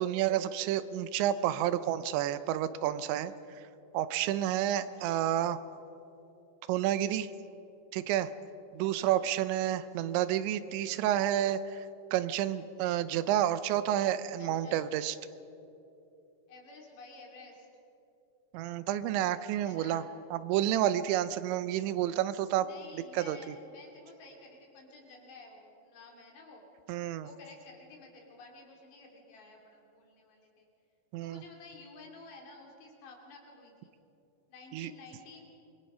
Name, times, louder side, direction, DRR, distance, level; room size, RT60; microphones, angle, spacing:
voice 1, 0.0-3.3 3.9-5.6 6.7-7.3 7.9-8.3 8.7-11.8 12.1-15.2 18.5-20.0 20.3-22.7 23.1-23.4 26.9-27.3 31.1-31.4 34.7-34.9, right 12 dB, 90° right, 14 dB, 3.1 m, -30 dB
voice 2, 4.7-5.2 8.8-9.2 14.4-14.9 16.5-17.7 19.6-20.1 22.6-26.6 27.2-30.7 31.2-33.9 34.5-35.4, left 3 dB, 70° left, 0 dB, 4.9 m, -52 dB
26.0 x 22.5 x 5.6 m, 2.9 s
omnidirectional pair, 5.1 m